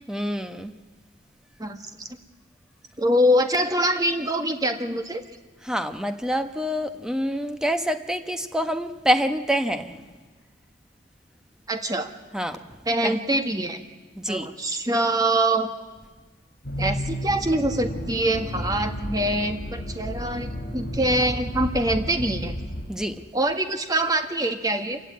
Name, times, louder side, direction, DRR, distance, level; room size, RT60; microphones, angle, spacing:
voice 1, 0.1-0.7 5.7-10.0 12.3-12.6 13.0-13.1 14.2-14.5 22.9-23.2, equal, 5° right, 8 dB, 1.1 m, -26 dB
voice 2, 1.6-2.1 3.0-5.2 11.7-12.1 12.8-13.8 14.3-15.7 16.8-22.5 23.3-25.0, right 1 dB, 20° right, 6 dB, 1.6 m, -24 dB
Accelerating revving vroom, 16.6-22.9, equal, 60° left, 5.4 m, -32 dB
26.5 x 16.0 x 9.6 m, 1.3 s
head